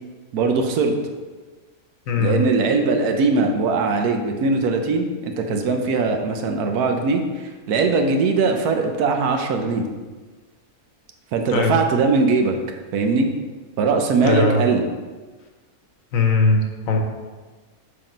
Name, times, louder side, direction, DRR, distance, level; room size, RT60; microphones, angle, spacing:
voice 1, 0.3-0.9 2.2-9.8 11.3-12.5 12.9-13.3 13.8-14.8, right 4 dB, 80° right, 4 dB, 1.2 m, -20 dB
voice 2, 2.1-2.4 11.5-11.7 14.2-14.7 16.1-17.0, left 3 dB, 65° left, 3 dB, 1.1 m, -19 dB
6.6 x 3.8 x 5.1 m, 1.3 s
omnidirectional pair, 1.6 m